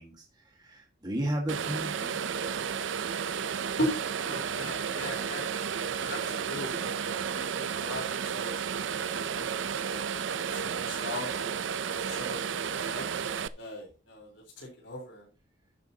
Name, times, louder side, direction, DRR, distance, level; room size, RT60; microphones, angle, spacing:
voice 1, 0.0-2.2 2.5-2.8, right 1 dB, 25° right, 1 dB, 1.6 m, -35 dB
sound 1, 1.5-13.5, right 7 dB, 85° right, 0.5 m, -32 dB
voice 2, 4.2-5.5 6.0-8.6 8.9-9.5 9.8-10.0 10.5-11.5 11.9-13.1 13.6-14.3 14.6-15.2, left 1 dB, 85° left, -1 dB, 3.8 m, -38 dB
11.5 x 9.7 x 2.8 m, 0.32 s
head